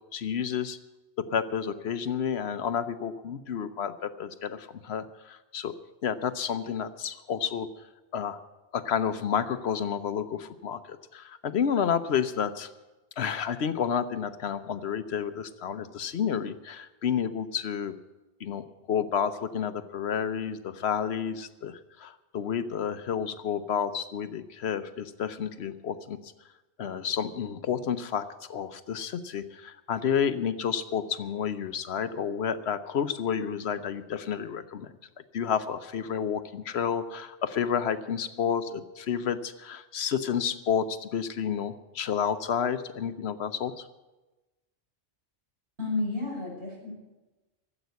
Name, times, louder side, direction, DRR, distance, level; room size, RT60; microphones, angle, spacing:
voice 1, 0.1-0.8 1.2-5.7 6.0-7.7 8.1-8.4 8.7-12.7 13.2-17.9 18.4-26.3 26.8-34.9 35.3-43.9, left 7 dB, 70° left, 11 dB, 1.0 m, -30 dB
voice 2, 45.8-46.9, left 3 dB, 65° right, -3 dB, 5.7 m, -31 dB
13.5 x 8.1 x 9.3 m, 1.1 s
omnidirectional pair, 1.2 m